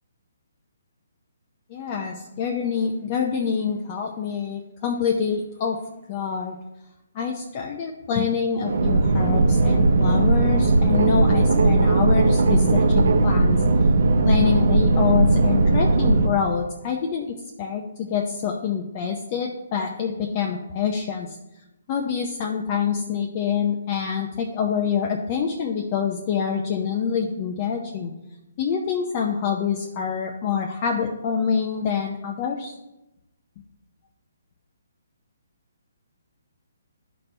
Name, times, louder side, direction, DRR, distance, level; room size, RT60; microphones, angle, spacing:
voice 1, 1.7-5.8 6.1-6.5 7.1-13.6 14.2-21.3 21.9-28.1 28.6-32.7, left 7 dB, 35° left, 1 dB, 0.6 m, -26 dB
sound 1, 8.6-16.3, right 3 dB, 70° right, 0.8 m, -18 dB
11.5 x 4.3 x 3.3 m, 0.95 s
hypercardioid pair, 155°, 0 cm